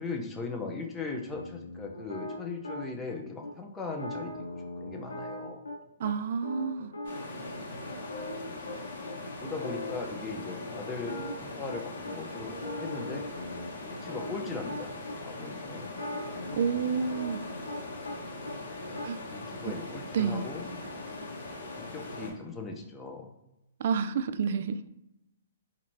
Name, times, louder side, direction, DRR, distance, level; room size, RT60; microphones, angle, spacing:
voice 1, 0.0-5.6 6.6-6.7 7.9-8.1 8.5-8.7 9.4-13.3 13.8-14.9 15.2-15.9 18.9-20.7 21.8-23.3, left 4 dB, 15° left, 0.7 m, -39 dB
sound 1, 1.0-3.1 3.4-3.5 3.9-6.1 6.4-8.8 9.1-9.2 9.4-10.0 10.3-12.1 12.5-15.2 15.8-18.2 18.4-19.0, left 1 dB, 90° left, 0.8 m, -40 dB
voice 2, 6.0-6.9 16.5-17.4 19.0-19.2 19.6-19.8 20.1-20.5 23.8-24.8, right 6 dB, 55° right, 0.3 m, -29 dB
sound 2, 7.0-22.3, left 2 dB, 55° left, 1.3 m, -41 dB
4.3 x 2.8 x 2.7 m
hypercardioid pair, 130°, 0 cm